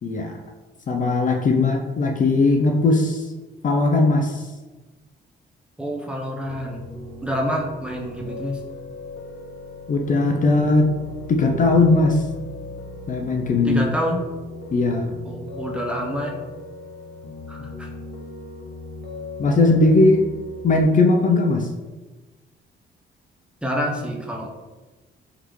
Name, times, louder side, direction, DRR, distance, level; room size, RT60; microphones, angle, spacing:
voice 1, 0.0-0.4 0.9-3.3 3.6-4.5 9.9-10.9 11.3-12.2 13.1-13.8 14.7-15.1 19.4-20.2 20.6-21.7, left 2 dB, 40° left, 2 dB, 0.5 m, -18 dB
voice 2, 5.8-6.8 7.2-8.6 13.6-14.2 15.2-16.4 17.5-17.9 23.6-24.5, equal, 5° right, -1 dB, 0.7 m, -27 dB
Piano, 6.5-20.8, left 3 dB, 60° left, 0.9 m, -38 dB
3.9 x 3.2 x 3.1 m, 1.2 s
cardioid pair, 90°, 20 cm